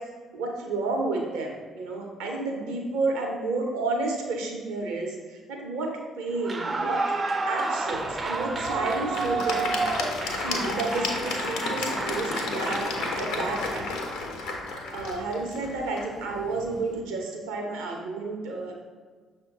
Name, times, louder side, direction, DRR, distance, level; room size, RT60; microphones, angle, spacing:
voice 1, 0.3-5.9 6.1-7.0 7.5-9.7 10.3-12.9 13.1-13.8 14.4-14.5 14.9-18.7, right 3 dB, 75° right, 1 dB, 0.7 m, -31 dB
Clapping / Cheering / Applause, 6.4-13.8, right 3 dB, 35° right, 0.4 m, -31 dB
Applause / Crowd, 7.9-17.0, left 3 dB, 70° left, 0.5 m, -33 dB
6.2 x 2.2 x 3.7 m, 1.5 s
figure-of-eight pair, 45°, 0 cm